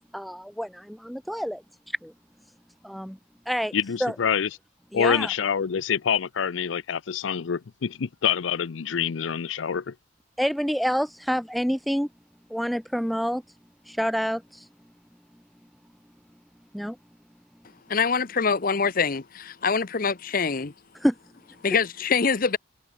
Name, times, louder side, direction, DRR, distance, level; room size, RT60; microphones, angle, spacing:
voice 1, 0.1-1.6 2.0-2.1 2.8-3.2 3.5-3.7 4.0-4.2 4.9-5.3 10.4-12.1 12.5-13.4 13.9-14.7 16.7-17.0 21.0-21.1 21.7-21.8, equal, ahead, 0.3 m, -27 dB
voice 2, 3.7-4.5 4.9-9.9, left 7 dB, 85° left, 0.5 m, -26 dB
voice 3, 17.9-20.7 21.6-22.6, left 5 dB, 50° left, 0.9 m, -24 dB
head